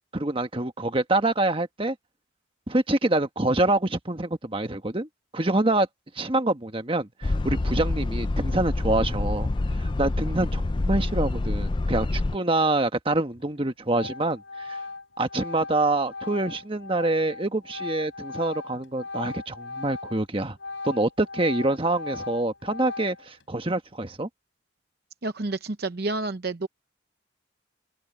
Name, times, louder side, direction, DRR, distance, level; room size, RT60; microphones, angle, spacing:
voice 1, 0.1-1.9 2.7-5.1 5.3-5.9 6.1-9.5 9.8-14.8 15.2-20.6 20.8-24.3, right 2 dB, 30° right, 1.4 m, -26 dB
sound 1, 7.2-12.4, left 2 dB, 25° left, 0.4 m, -26 dB
Organ, 13.3-13.6 13.9-20.2 20.5-23.4, left 3 dB, 75° left, 5.9 m, -38 dB
voice 2, 25.2-26.7, right 2 dB, 55° right, 0.8 m, -29 dB
open air
head